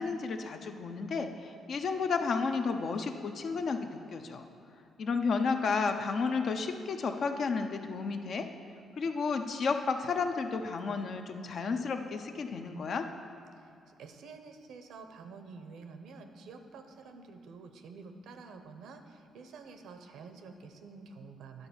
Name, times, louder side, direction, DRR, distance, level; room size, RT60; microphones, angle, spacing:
voice 1, 0.0-4.4 5.0-8.5 9.0-13.1, left 4 dB, 55° left, 6 dB, 0.6 m, -32 dB
voice 2, 13.6-21.7, right 4 dB, 75° right, 7 dB, 0.7 m, -49 dB
10.5 x 4.0 x 7.0 m, 2.5 s
cardioid pair, 90°, 0 cm